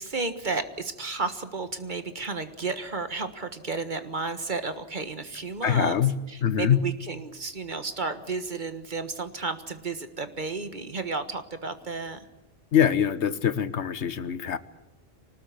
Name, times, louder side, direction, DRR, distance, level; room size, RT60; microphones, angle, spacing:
voice 1, 0.0-6.0 6.3-12.3, right 4 dB, 45° right, 9 dB, 1.6 m, -32 dB
voice 2, 5.6-6.1 6.4-6.8 12.7-14.6, left 9 dB, 90° left, 13 dB, 1.4 m, -23 dB
25.0 x 19.5 x 8.4 m, 0.96 s
omnidirectional pair, 1.1 m